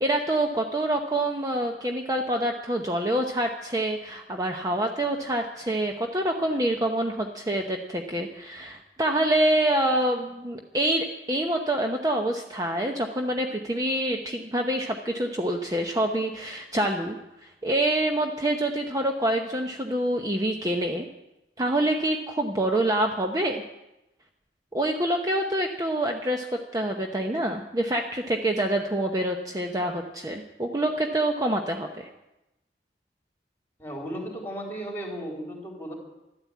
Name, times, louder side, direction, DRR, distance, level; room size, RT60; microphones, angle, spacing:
voice 1, 0.0-17.2 17.4-21.1 21.6-23.6 24.7-26.5 26.7-32.1, right 1 dB, 20° right, 3 dB, 0.9 m, -26 dB
voice 2, 33.8-35.9, right 1 dB, 15° left, 1 dB, 3.6 m, -35 dB
13.0 x 11.5 x 8.5 m, 0.95 s
head